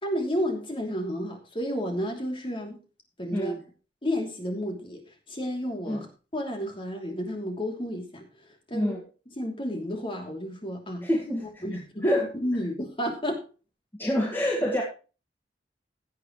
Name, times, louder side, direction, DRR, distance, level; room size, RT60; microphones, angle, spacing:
voice 1, 0.0-2.8 3.2-3.5 4.0-6.1 6.3-8.9 9.4-11.1 11.6-13.4 14.6-14.7, equal, 30° left, 2 dB, 3.1 m, -31 dB
voice 2, 11.0-11.6 12.0-12.2 14.0-14.8, equal, 10° left, -2 dB, 1.9 m, -27 dB
17.0 x 8.4 x 3.2 m, 0.34 s
head